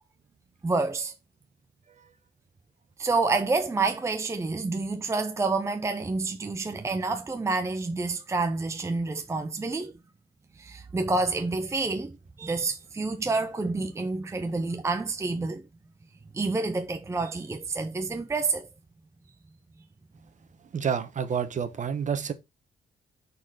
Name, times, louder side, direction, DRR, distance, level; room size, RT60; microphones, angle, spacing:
voice 1, 0.6-1.1 3.0-10.0 10.6-15.6 16.3-18.7, right 3 dB, 15° right, 0.5 m, -28 dB
voice 2, 20.7-22.3, right 7 dB, 45° right, 1.1 m, -29 dB
6.1 x 4.3 x 4.9 m
cardioid pair, 125°, 18 cm